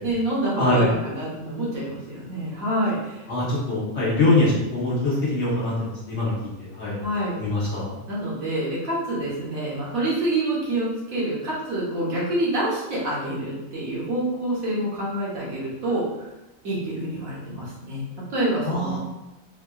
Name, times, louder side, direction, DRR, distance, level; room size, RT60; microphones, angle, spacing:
voice 1, 0.0-3.2 7.0-7.4 8.1-16.3 16.6-19.0, right 1 dB, 65° right, -7 dB, 1.4 m, -27 dB
voice 2, 0.6-0.9 3.3-6.3 6.6-7.0 7.4-8.0 18.6-19.0, left 2 dB, 50° left, -7 dB, 1.0 m, -23 dB
3.5 x 2.4 x 2.3 m, 0.99 s
omnidirectional pair, 1.6 m